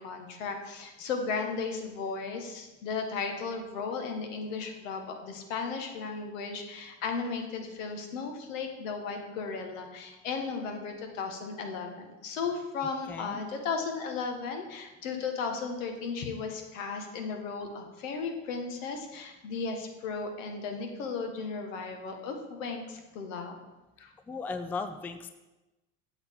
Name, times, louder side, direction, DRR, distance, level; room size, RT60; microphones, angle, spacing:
voice 1, 0.0-23.6 24.0-24.1, left 5 dB, 80° left, 4 dB, 1.5 m, -35 dB
voice 2, 13.1-13.4 24.3-25.3, left 4 dB, 5° left, 9 dB, 0.3 m, -36 dB
8.0 x 7.3 x 3.7 m, 1.1 s
supercardioid pair, 95°, 38 cm